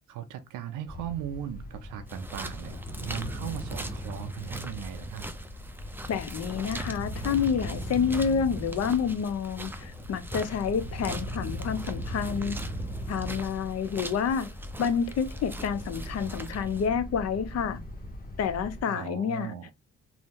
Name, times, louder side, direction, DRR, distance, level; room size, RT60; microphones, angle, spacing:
voice 1, 0.1-5.3 18.9-19.7, right 10 dB, 85° right, 0.5 m, -38 dB
sound 1, 0.9-18.8, equal, 30° left, 1.3 m, -38 dB
sound 2, 2.1-16.9, right 1 dB, 5° right, 0.4 m, -43 dB
voice 2, 6.1-12.6 13.1-14.5 14.8-17.8 18.4-19.5, left 7 dB, 55° left, 0.6 m, -29 dB
2.6 x 2.1 x 3.6 m
cardioid pair, 90°, 30 cm